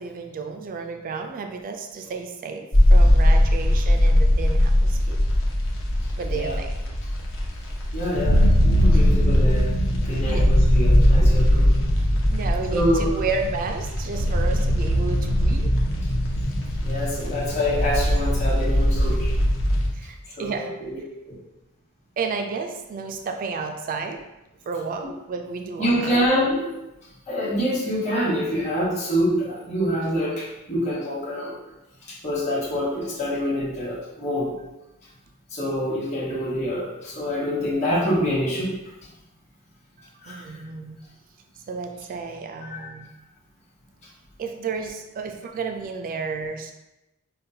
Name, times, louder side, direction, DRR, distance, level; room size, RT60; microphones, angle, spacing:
voice 1, 0.0-2.7 2.9-5.2 6.2-6.8 8.9-9.1 10.2-10.5 12.3-15.7 20.0-20.7 22.2-24.2 24.7-26.3 40.3-41.0 41.7-43.1 44.4-46.7, right 4 dB, 40° right, 5 dB, 0.3 m, -32 dB
sound 1, 2.7-19.9, equal, 60° left, 0.7 m, -20 dB
voice 2, 7.9-9.7 10.0-11.7 12.7-13.1 16.8-19.3 20.4-21.0 25.8-26.7 27.3-31.5 32.2-34.5 35.5-38.7 40.2-40.4 42.6-42.9, equal, 30° left, -8 dB, 1.1 m, -26 dB
5.2 x 2.2 x 2.7 m, 0.96 s
head